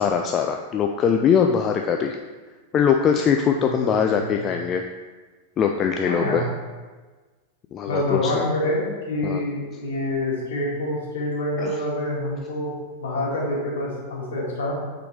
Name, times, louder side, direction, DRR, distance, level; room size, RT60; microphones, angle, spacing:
voice 1, 0.0-2.2 2.7-4.8 5.6-6.4 7.7-8.4 9.2-9.4 11.6-11.8, left 7 dB, 30° left, 3 dB, 0.3 m, -21 dB
voice 2, 4.0-4.4 6.0-6.4 7.9-12.7 13.0-14.7, left 1 dB, 60° left, -4 dB, 2.0 m, -27 dB
8.3 x 4.0 x 3.3 m, 1.3 s
figure-of-eight pair, 90°, 0 cm